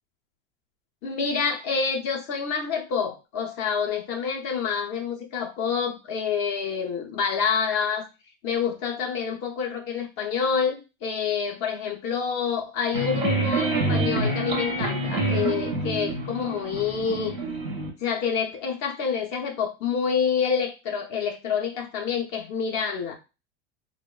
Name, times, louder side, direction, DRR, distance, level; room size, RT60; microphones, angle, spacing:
voice 1, 1.0-8.1 8.4-17.3 18.0-23.1, left 6 dB, 35° left, 2 dB, 0.5 m, -27 dB
sound 1, 12.9-17.9, right 2 dB, 15° right, 0.4 m, -27 dB
2.9 x 2.0 x 2.3 m, 0.29 s
supercardioid pair, 160°, 32 cm